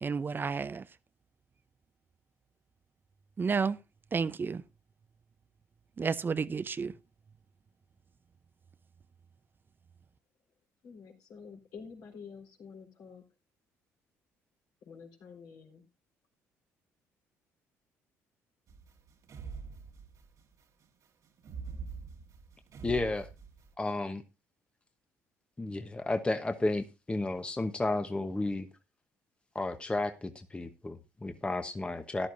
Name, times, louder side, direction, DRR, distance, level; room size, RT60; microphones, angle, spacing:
voice 1, 0.0-0.8 3.4-3.8 4.1-4.6 6.0-6.9, right 5 dB, 35° right, 0.6 m, -31 dB
voice 2, 10.8-13.2 14.9-15.9, left 5 dB, 70° left, 4.1 m, -49 dB
sound 1, 18.7-20.4 21.4-23.7, right 5 dB, 60° right, 1.5 m, -44 dB
voice 3, 22.8-23.3 23.8-24.2 25.6-28.7 29.5-32.3, left 2 dB, 15° left, 1.0 m, -32 dB
14.5 x 11.0 x 2.6 m
supercardioid pair, 75°, 6 cm